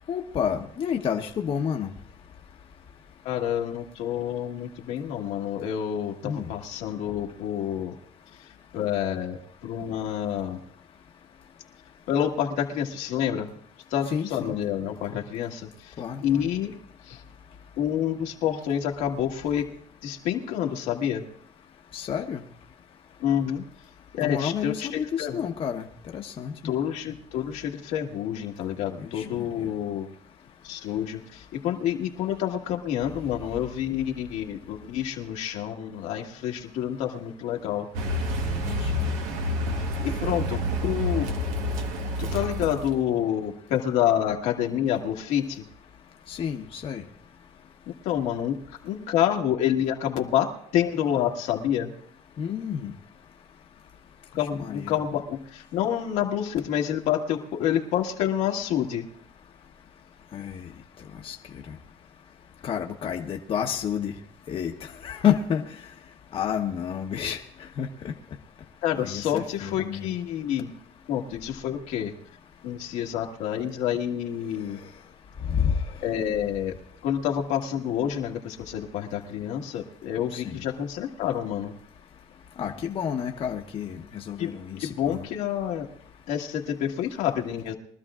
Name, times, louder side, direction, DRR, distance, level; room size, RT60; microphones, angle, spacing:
voice 1, 0.1-1.9 6.2-6.5 14.1-14.5 16.0-16.4 21.9-22.4 24.2-25.8 26.1-26.5 29.0-29.5 38.5-39.0 39.3-39.4 40.2-40.6 46.3-47.0 52.4-52.9 54.4-54.9 60.3-60.7 61.2-61.3 62.6-64.1 64.5-65.6 66.3-67.4 67.8-67.9 69.0-70.0 75.5-75.8 80.3-80.5 82.6-85.3, left 8 dB, 45° left, 2 dB, 1.0 m, -30 dB
voice 2, 3.2-8.0 8.7-10.6 12.1-13.6 13.9-15.9 16.2-16.7 17.0-17.2 17.8-19.7 20.0-21.3 23.2-23.6 24.1-25.4 26.6-30.1 30.6-37.9 39.8-41.3 42.2-45.7 48.0-48.6 48.8-51.9 54.3-59.0 68.8-70.7 71.1-72.1 72.6-74.8 76.0-76.7 77.0-81.7 84.4-84.5 84.8-85.9 86.3-87.7, left 10 dB, 85° left, 1 dB, 1.6 m, -28 dB
Car, 37.9-43.1, left 1 dB, 90° right, 1.3 m, -28 dB
23.0 x 12.5 x 2.5 m, 0.62 s
cardioid pair, 100°, 13 cm